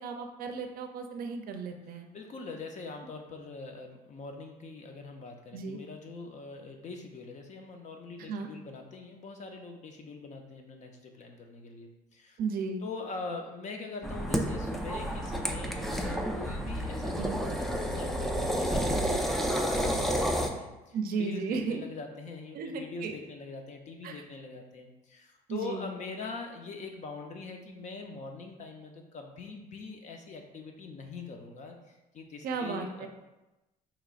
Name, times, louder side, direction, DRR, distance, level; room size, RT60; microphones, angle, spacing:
voice 1, 0.0-2.1 5.5-5.8 8.3-8.5 12.4-12.8 17.2-17.4 20.9-21.8 22.5-23.2 24.0-24.1 25.5-25.8 32.4-33.1, right 5 dB, 60° right, 5 dB, 0.5 m, -34 dB
voice 2, 2.1-12.4 12.8-33.1, left 4 dB, 45° left, 3 dB, 0.6 m, -43 dB
sound 1, 14.0-20.5, equal, ahead, 0.4 m, -30 dB
4.9 x 3.0 x 2.4 m, 1.0 s
cardioid pair, 110°, 17 cm